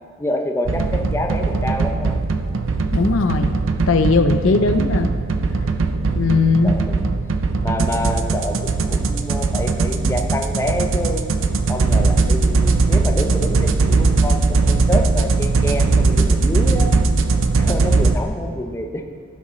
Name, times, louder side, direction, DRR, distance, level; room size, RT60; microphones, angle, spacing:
voice 1, 0.2-2.2 6.1-7.2 7.6-11.3 11.7-16.9 17.5-19.0, left 1 dB, 15° left, 3 dB, 0.6 m, -27 dB
sound 1, 0.6-18.2, right 3 dB, 80° right, 0.6 m, -19 dB
voice 2, 2.9-3.6 3.9-5.1 6.1-6.7, left 3 dB, 75° left, 8 dB, 0.6 m, -18 dB
15.5 x 6.4 x 3.2 m, 2.2 s
head